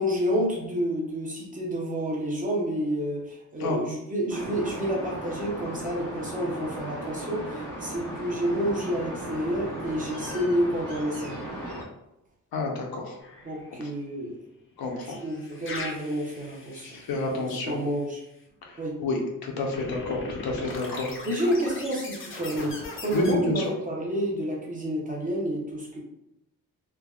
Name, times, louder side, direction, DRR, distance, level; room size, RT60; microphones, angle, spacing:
voice 1, 0.0-11.4 13.4-14.4 15.0-17.0 17.3-18.2 18.8-19.0 21.2-26.0, equal, 25° right, -3 dB, 0.5 m, -29 dB
sound 1, 4.3-11.8, right 1 dB, 65° right, 0.9 m, -36 dB
voice 2, 12.5-13.2 14.8-15.2 16.7-17.8 18.7-21.1 23.1-23.6, left 2 dB, 90° left, 1 dB, 0.7 m, -29 dB
sound 2, 13.2-13.8 14.8-18.0 19.7-23.3, left 2 dB, 35° left, 0.5 m, -40 dB
3.3 x 2.2 x 2.3 m, 0.85 s
wide cardioid pair, 180°, 35 cm